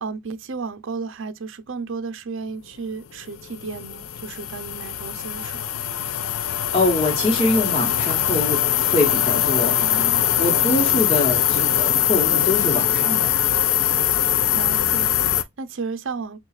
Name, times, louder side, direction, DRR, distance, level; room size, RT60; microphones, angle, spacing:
voice 1, 0.0-5.8 9.8-10.3 14.5-16.4, right 4 dB, 75° right, 0.6 m, -33 dB
sound 1, 3.2-15.4, left 10 dB, 80° left, 0.4 m, -22 dB
voice 2, 6.5-9.8 10.4-13.3, left 2 dB, 25° left, 1.0 m, -24 dB
6.7 x 2.4 x 2.4 m
head